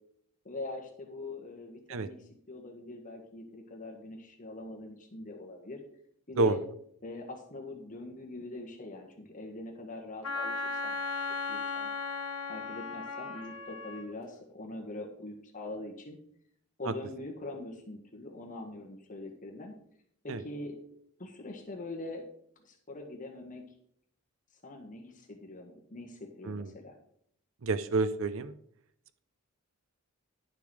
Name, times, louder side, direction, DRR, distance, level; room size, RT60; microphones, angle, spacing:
voice 1, 0.4-5.8 6.3-6.6 7.0-11.2 11.5-11.9 12.5-16.2 16.8-19.7 20.2-20.8 21.2-22.2 22.6-23.6 24.6-27.0, left 2 dB, 35° left, 1 dB, 1.6 m, -43 dB
Wind instrument woodwind instrument, 10.2-14.1, left 3 dB, 75° left, 1.5 m, -36 dB
voice 2, 27.6-28.5, right 3 dB, 60° right, 13 dB, 0.5 m, -29 dB
11.5 x 6.9 x 4.8 m, 0.68 s
head